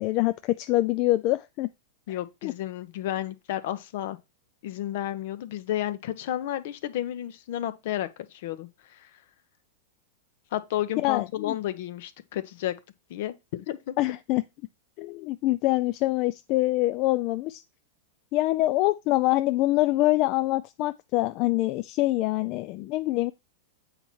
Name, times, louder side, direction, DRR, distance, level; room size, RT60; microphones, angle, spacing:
voice 1, 0.0-1.7 2.1-2.5 11.0-11.6 14.0-14.4 15.0-17.6 18.3-23.3, left 18 dB, 45° left, 0.4 m, -25 dB
voice 2, 2.1-4.2 4.6-9.1 10.5-12.7 13.1-14.0, left 12 dB, 65° left, 0.9 m, -32 dB
7.9 x 4.3 x 4.5 m
hypercardioid pair, 130°, 0 cm